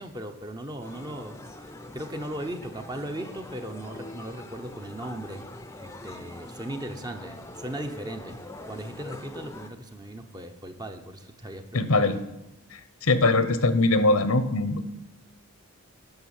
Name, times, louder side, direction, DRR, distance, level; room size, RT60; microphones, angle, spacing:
voice 1, 0.0-5.4 5.8-8.4 8.7-12.2, right 1 dB, 20° right, 6 dB, 0.9 m, -38 dB
sound 1, 0.8-9.7, left 1 dB, 15° left, 0.7 m, -43 dB
voice 2, 11.7-12.2 12.7-14.9, left 2 dB, 75° left, 12 dB, 1.0 m, -22 dB
10.5 x 6.9 x 7.2 m, 0.98 s
head